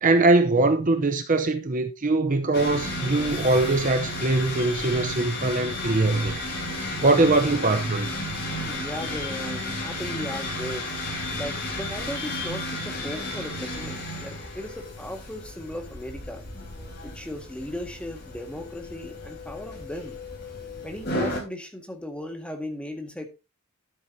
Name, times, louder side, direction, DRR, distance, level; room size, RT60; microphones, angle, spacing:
voice 1, 0.0-6.4 7.0-8.1, right 2 dB, 40° right, 0.8 m, -22 dB
sound 1, 2.5-21.4, left 1 dB, 50° left, 4.2 m, -33 dB
voice 2, 8.6-11.0 11.4-16.4 17.0-20.2 20.8-23.2, left 1 dB, 5° left, 1.8 m, -36 dB
13.0 x 7.8 x 2.8 m
head